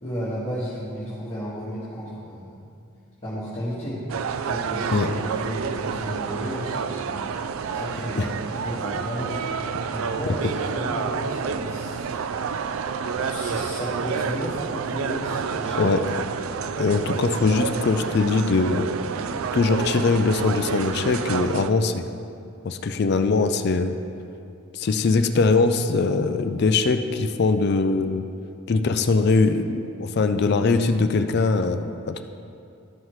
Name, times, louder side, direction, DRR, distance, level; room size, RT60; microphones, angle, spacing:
voice 1, 0.0-2.6 3.2-4.0 4.4-7.1 7.7-9.4 9.9-12.2 13.0-15.8, equal, 25° left, -11 dB, 1.6 m, -33 dB
sound 1, 4.1-21.7, right 6 dB, 75° right, 0.3 m, -29 dB
voice 2, 16.8-18.9 19.5-22.0 22.6-24.0 24.7-28.2 28.7-32.2, left 3 dB, 50° left, 8 dB, 0.4 m, -21 dB
13.5 x 5.6 x 3.1 m, 2.5 s
head